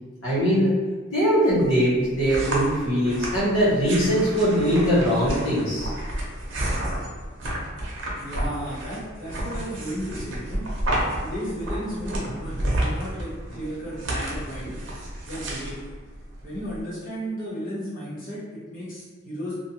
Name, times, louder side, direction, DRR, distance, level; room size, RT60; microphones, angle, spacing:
voice 1, 0.2-0.7 1.1-5.9, equal, 80° left, -10 dB, 1.0 m, -21 dB
sound 1, 1.5-16.8, right 1 dB, 65° right, 0.6 m, -31 dB
voice 2, 8.2-10.7 11.2-14.7 15.2-15.8 16.4-19.5, equal, 40° left, -11 dB, 1.2 m, -34 dB
2.5 x 2.4 x 2.8 m, 1.4 s
head